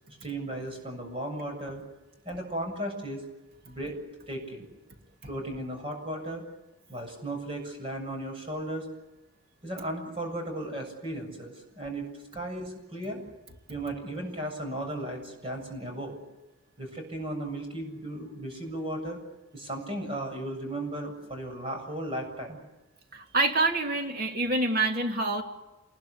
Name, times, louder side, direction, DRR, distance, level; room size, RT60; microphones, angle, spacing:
voice 1, 0.2-1.8 2.2-3.2 3.6-4.0 4.3-4.7 5.3-6.4 6.9-8.9 9.6-12.1 12.3-13.2 13.7-16.2 16.8-19.2 19.5-22.6, right 1 dB, 25° right, 4 dB, 7.5 m, -35 dB
voice 2, 23.1-25.4, right 2 dB, 45° right, 3 dB, 3.1 m, -26 dB
28.0 x 21.5 x 8.4 m, 1.0 s
head